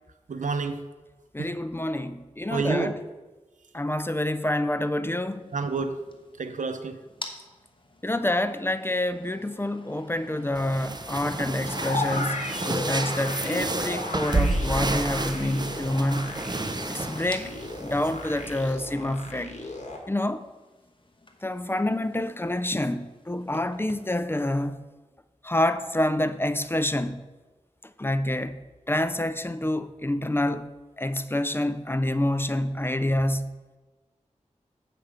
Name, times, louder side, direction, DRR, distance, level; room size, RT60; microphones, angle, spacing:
voice 1, 0.3-0.8 1.4-1.5 2.5-2.9 5.5-6.0 6.4-7.0, right 4 dB, 85° right, 0.6 m, -28 dB
voice 2, 1.3-3.0 3.7-5.5 8.0-16.3 16.9-17.5 17.8-19.5 20.1-20.5 21.4-24.8 25.4-27.3 28.0-30.7 31.0-33.6, left 1 dB, 20° left, 0.4 m, -27 dB
sound 1, 5.4-24.1, left 2 dB, 40° left, 1.0 m, -48 dB
sound 2, 10.5-18.7, right 2 dB, 35° right, 0.6 m, -31 dB
sound 3, 11.7-20.0, left 2 dB, 65° left, 1.6 m, -35 dB
7.9 x 5.9 x 5.0 m
wide cardioid pair, 50°, 13 cm